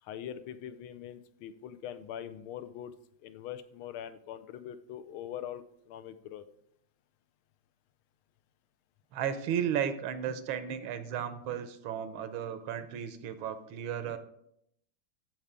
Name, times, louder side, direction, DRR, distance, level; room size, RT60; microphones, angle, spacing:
voice 1, 0.0-2.9 3.2-6.4, left 10 dB, 85° left, 11 dB, 1.5 m, -42 dB
voice 2, 9.1-14.2, right 9 dB, 80° right, 11 dB, 1.6 m, -34 dB
13.5 x 4.8 x 3.6 m, 0.74 s
omnidirectional pair, 2.3 m